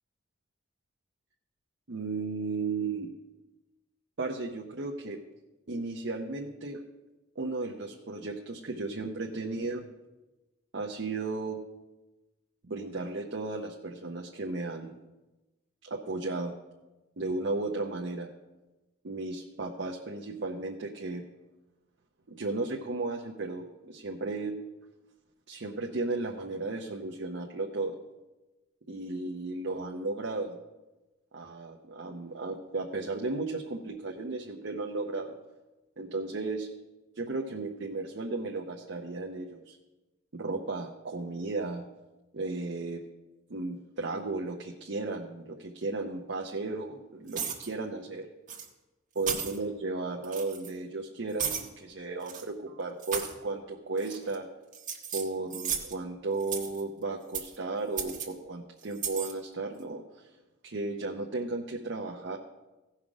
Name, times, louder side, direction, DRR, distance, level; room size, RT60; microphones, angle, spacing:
voice 1, 1.9-3.1 4.2-5.2 5.7-6.8 7.4-9.8 10.7-11.6 12.6-15.0 15.8-16.5 17.2-18.3 19.0-21.2 22.3-24.6 25.5-28.0 28.9-30.6 31.3-35.3 36.0-36.7 37.1-39.8 40.3-41.8 42.3-43.0 43.5-48.3 49.1-54.5 55.1-60.3 60.6-62.4, right 3 dB, 65° right, 1 dB, 0.8 m, -34 dB
sound 1, 47.3-47.7 48.5-48.7 49.2-49.6 50.2-50.7 51.4-51.7 52.2-52.4 53.0-53.3 54.0-54.4 54.7-55.9 56.4-56.8 57.3-57.6 58.0-58.3 58.9-59.3, right 7 dB, 40° right, 1.4 m, -35 dB
16.0 x 5.8 x 4.9 m, 1.1 s
head